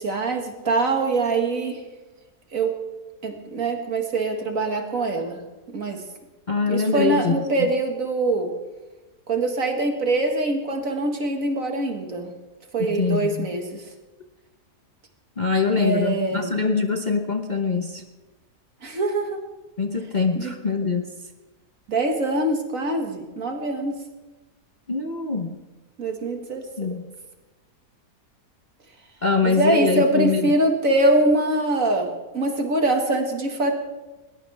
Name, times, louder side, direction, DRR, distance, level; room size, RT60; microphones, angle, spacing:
voice 1, 0.0-1.8 2.5-2.7 3.2-5.4 5.7-6.0 6.7-8.5 9.3-12.3 12.7-13.8 15.8-16.5 18.8-19.4 20.4-20.5 21.9-24.0 26.0-26.7 29.4-33.7, right 2 dB, 55° right, 3 dB, 2.2 m, -23 dB
voice 2, 6.5-7.7 13.0-13.5 15.4-18.0 19.8-21.1 24.9-25.5 26.8-27.0 29.2-30.5, left 4 dB, 35° left, 3 dB, 1.0 m, -23 dB
21.0 x 19.5 x 3.5 m, 1.1 s
omnidirectional pair, 1.7 m